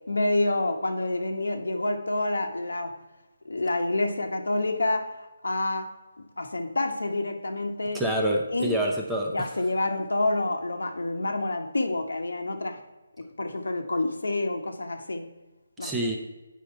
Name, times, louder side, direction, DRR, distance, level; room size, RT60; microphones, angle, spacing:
voice 1, 0.1-2.9 3.4-5.9 6.4-8.0 8.5-8.8 9.3-12.8 13.2-15.3 15.8-15.9, left 2 dB, 85° left, 4 dB, 1.1 m, -28 dB
voice 2, 7.9-9.5 15.8-16.2, right 1 dB, 5° right, 0 dB, 0.7 m, -27 dB
8.5 x 5.0 x 4.4 m, 1.1 s
figure-of-eight pair, 165°, 0 cm